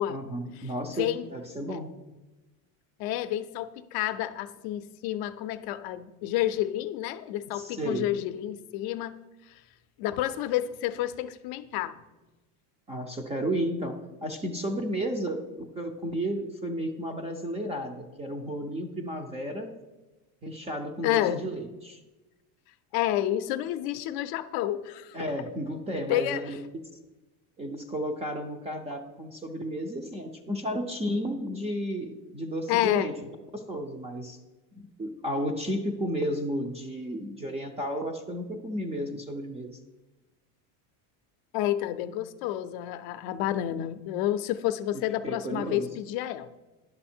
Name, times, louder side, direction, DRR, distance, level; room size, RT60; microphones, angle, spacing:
voice 1, 0.1-1.9 7.5-8.1 12.9-19.7 20.4-22.0 25.1-26.6 27.6-34.4 34.7-39.8 45.2-45.9, equal, 15° right, 4 dB, 0.4 m, -33 dB
voice 2, 0.9-1.3 3.0-9.2 9.5-9.6 10.0-12.0 21.0-21.4 22.9-25.2 25.9-26.6 32.7-33.1 41.5-46.5, left 13 dB, 55° left, 11 dB, 0.5 m, -29 dB
11.0 x 5.5 x 4.3 m, 1.1 s
cardioid pair, 150°, 45 cm